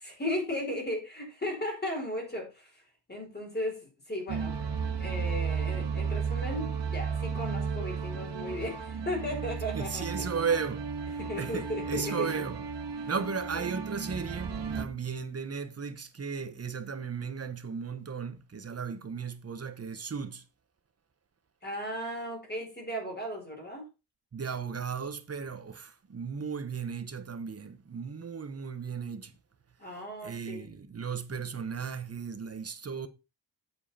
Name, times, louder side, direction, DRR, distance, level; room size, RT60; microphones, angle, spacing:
voice 1, 0.0-2.7 3.1-4.5 5.0-10.3 11.2-12.3 13.6-13.7 21.6-23.9 29.8-30.7, left 1 dB, 25° left, 5.0 m, -36 dB
sound 1, 4.3-14.9, right 6 dB, 70° right, 2.1 m, -34 dB
voice 2, 9.7-10.9 11.3-12.6 13.1-20.4 24.3-29.3 30.2-33.1, right 6 dB, 35° right, 1.3 m, -35 dB
9.0 x 8.5 x 4.3 m
wide cardioid pair, 155°, 43 cm